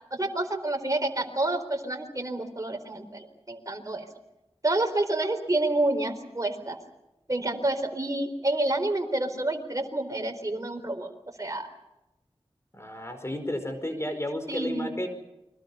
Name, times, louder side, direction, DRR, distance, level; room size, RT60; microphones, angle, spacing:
voice 1, 0.1-4.0 4.6-6.8 7.3-11.1 11.4-11.7 14.5-14.9, right 2 dB, 35° right, 4 dB, 4.2 m, -28 dB
voice 2, 12.7-15.1, left 1 dB, 25° left, 7 dB, 5.0 m, -32 dB
29.5 x 23.0 x 5.7 m, 0.96 s
wide cardioid pair, 45°, 10 cm